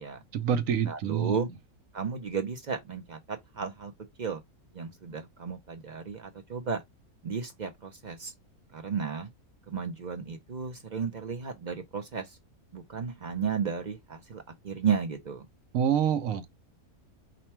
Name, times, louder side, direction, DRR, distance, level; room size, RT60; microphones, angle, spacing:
voice 1, 0.3-1.4 15.7-16.5, right 8 dB, 65° right, 0.9 m, -26 dB
voice 2, 0.9-1.5 1.9-3.9 4.2-4.4 4.7-6.8 7.2-8.3 8.7-9.3 9.7-12.4 12.7-15.5, right 6 dB, 50° right, 0.5 m, -33 dB
5.1 x 2.2 x 4.3 m
omnidirectional pair, 1.6 m